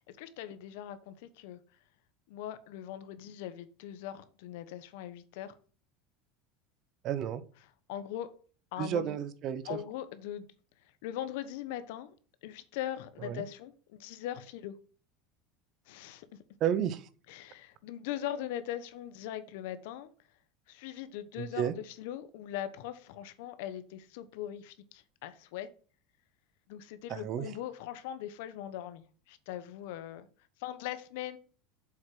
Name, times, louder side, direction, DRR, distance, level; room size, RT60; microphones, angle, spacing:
voice 1, 0.0-1.6 2.3-5.5 7.9-8.3 8.7-9.1 9.6-10.5 11.0-12.1 12.4-14.8 15.9-16.2 17.3-20.1 20.7-25.7 26.7-30.3 30.6-31.4, left 11 dB, 75° left, 1.1 m, -40 dB
voice 2, 7.0-7.4 8.8-9.8 13.2-13.4 16.6-17.1 21.4-21.7 27.1-27.5, right 9 dB, 50° right, 0.9 m, -32 dB
7.2 x 4.9 x 6.1 m
supercardioid pair, 120°, 0 cm